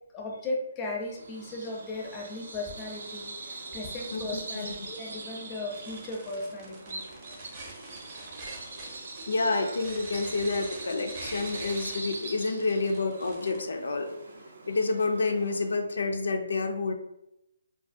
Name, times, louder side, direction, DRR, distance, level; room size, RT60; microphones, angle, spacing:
voice 1, 0.1-7.0, left 2 dB, 20° left, -1 dB, 0.5 m, -36 dB
Bird vocalization bird call bird song, 1.0-15.8, right 3 dB, 70° right, 0.5 m, -42 dB
sound 1, 5.7-13.6, right 2 dB, 30° right, 0.6 m, -45 dB
voice 2, 9.3-14.1 14.7-16.9, left 3 dB, 85° left, 5 dB, 0.3 m, -28 dB
2.4 x 2.2 x 2.5 m, 0.84 s
hypercardioid pair, 155°, 0 cm